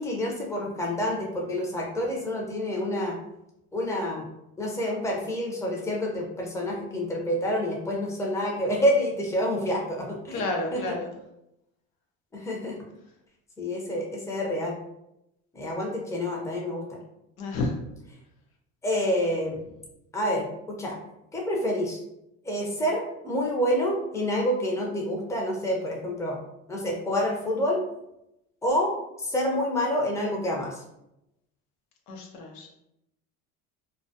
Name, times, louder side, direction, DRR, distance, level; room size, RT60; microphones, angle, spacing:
voice 1, 0.0-3.2 3.7-4.3 4.6-10.4 10.7-10.9 12.3-12.8 13.6-14.8 15.5-17.0 18.8-19.6 20.1-21.0 21.3-22.0 22.4-26.4 26.7-27.8 28.6-28.9 29.2-30.8, equal, 5° left, -1 dB, 0.6 m, -28 dB
voice 2, 10.3-11.1 17.4-17.7 32.1-32.7, left 2 dB, 85° left, 1 dB, 0.7 m, -30 dB
2.2 x 2.2 x 2.7 m, 0.84 s
supercardioid pair, 85°, 40 cm